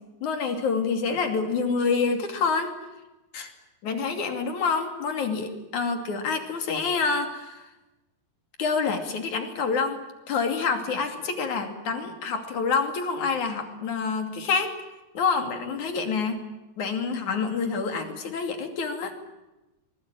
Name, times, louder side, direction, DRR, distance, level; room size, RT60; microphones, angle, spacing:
voice 1, 0.2-2.7 3.3-3.5 3.8-7.7 8.6-14.7 15.1-16.5 16.8-19.1, left 5 dB, 50° left, 5 dB, 3.7 m, -27 dB
24.5 x 20.5 x 9.0 m, 1.0 s
omnidirectional pair, 4.7 m